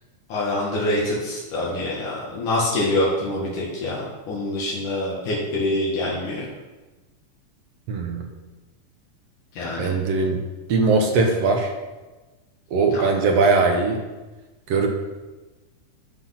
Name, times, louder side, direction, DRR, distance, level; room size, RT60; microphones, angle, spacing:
voice 1, 0.3-6.5 9.5-9.9 12.9-13.0, left 1 dB, 75° left, -5 dB, 3.2 m, -25 dB
voice 2, 7.9-8.3 9.8-10.4 10.7-11.7 12.7-14.0 14.7-14.9, right 3 dB, 65° right, 3 dB, 1.9 m, -20 dB
12.0 x 6.2 x 5.8 m, 1.2 s
omnidirectional pair, 3.6 m